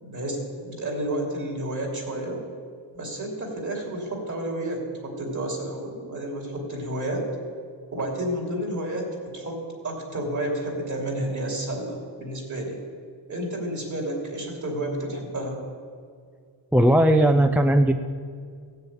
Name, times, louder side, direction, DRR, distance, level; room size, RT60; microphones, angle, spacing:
voice 1, 0.0-2.4 2.9-7.3 7.9-12.8 13.3-15.6, right 1 dB, 40° right, 0 dB, 3.1 m, -31 dB
voice 2, 16.7-17.9, right 1 dB, 5° right, 7 dB, 0.3 m, -17 dB
16.0 x 6.8 x 8.5 m, 2.1 s
wide cardioid pair, 155°, 46 cm